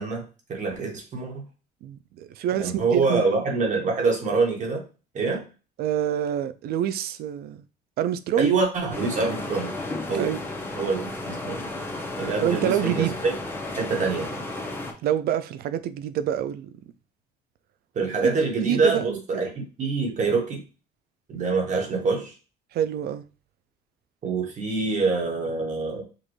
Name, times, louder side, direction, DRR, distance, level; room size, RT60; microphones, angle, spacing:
voice 1, 0.0-1.5 2.6-4.8 5.1-5.4 8.4-9.7 10.1-10.3 10.8-11.6 12.2-13.3 13.7-14.4 17.9-20.6 21.3-22.3 24.2-26.0, right 4 dB, 45° right, 1.4 m, -25 dB
voice 2, 1.8-3.2 5.8-7.6 8.0-8.5 10.1-10.4 12.4-13.1 15.0-16.7 18.2-19.4 22.7-23.3, right 10 dB, 65° right, 0.4 m, -26 dB
sound 1, 8.9-14.9, left 2 dB, 15° left, 0.9 m, -33 dB
5.3 x 2.6 x 3.1 m
cardioid pair, 110°, 17 cm